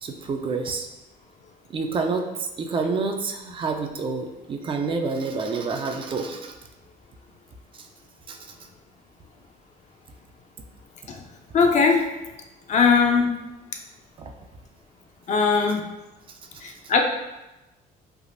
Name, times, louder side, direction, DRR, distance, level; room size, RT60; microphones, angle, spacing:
voice 1, 0.0-0.9 1.7-6.5 7.7-7.9 8.3-8.4 14.2-14.3, right 4 dB, 30° right, 4 dB, 0.3 m, -28 dB
voice 2, 11.5-12.1 12.7-13.3 15.3-15.8 16.6-17.0, left 5 dB, 45° left, 3 dB, 0.4 m, -19 dB
3.4 x 2.4 x 2.5 m, 1.0 s
cardioid pair, 110°, 17 cm